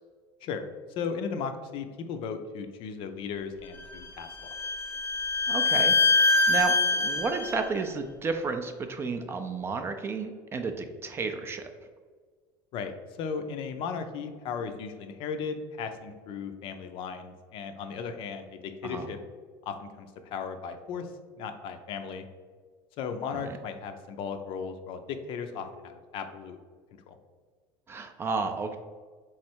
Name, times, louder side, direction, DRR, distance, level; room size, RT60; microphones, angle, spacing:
voice 1, 1.0-4.3 12.7-12.9 13.2-19.2 19.7-21.1 21.4-22.3 23.0-26.6 27.1-27.2, left 6 dB, 55° left, 7 dB, 0.5 m, -36 dB
Bowed string instrument, 3.8-7.6, left 3 dB, 15° left, 0.7 m, -24 dB
voice 2, 5.5-5.9 6.5-11.7 18.8-19.1 23.3-23.6 27.9-28.8, right 4 dB, 25° right, 6 dB, 0.3 m, -32 dB
3.7 x 3.2 x 4.4 m, 1.6 s
cardioid pair, 145°, 11 cm